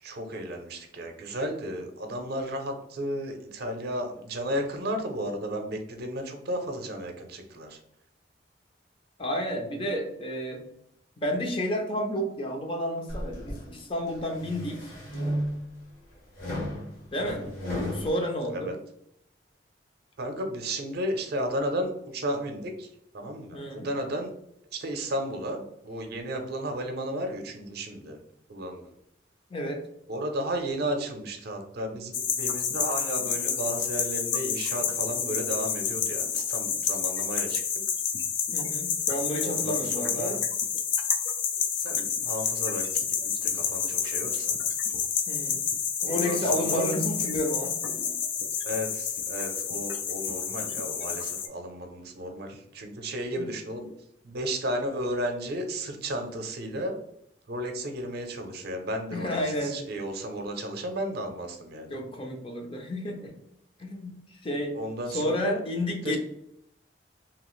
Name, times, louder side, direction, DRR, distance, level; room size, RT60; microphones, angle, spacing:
voice 1, 0.0-7.8 17.2-17.5 18.5-18.8 20.2-24.3 24.7-28.2 28.5-28.9 30.1-37.6 39.4-40.4 41.8-44.6 46.0-46.9 48.6-53.9 54.2-57.0 57.5-62.0 64.7-65.6 66.0-66.2, right 1 dB, 60° right, 5 dB, 0.5 m, -33 dB
voice 2, 9.2-10.6 11.2-14.9 17.1-17.4 17.9-18.7 23.5-23.9 29.5-29.8 38.5-40.4 45.3-45.6 46.0-48.1 53.4-53.5 59.1-59.8 61.9-63.3 63.8-64.8 65.1-66.2, equal, 30° left, 3 dB, 0.5 m, -31 dB
sound 1, 13.1-13.6 14.2-15.8 16.4-18.1, equal, 50° left, 0.9 m, -33 dB
sound 2, 32.1-51.5, left 7 dB, 80° left, 0.4 m, -29 dB
2.8 x 2.4 x 3.0 m, 0.74 s
head